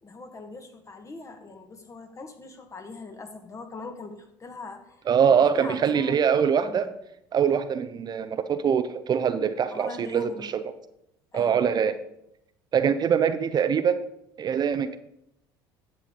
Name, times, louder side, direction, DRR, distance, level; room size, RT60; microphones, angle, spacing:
voice 1, 0.0-6.2 6.5-6.9 7.9-8.2 9.7-10.5 11.3-11.6, left 3 dB, 30° left, 6 dB, 1.5 m, -42 dB
voice 2, 5.1-6.9 7.3-10.6 11.3-12.0 12.7-14.1 14.4-15.0, right 7 dB, 40° right, 11 dB, 0.6 m, -23 dB
9.9 x 7.0 x 3.9 m, 0.79 s
hypercardioid pair, 70°, 11 cm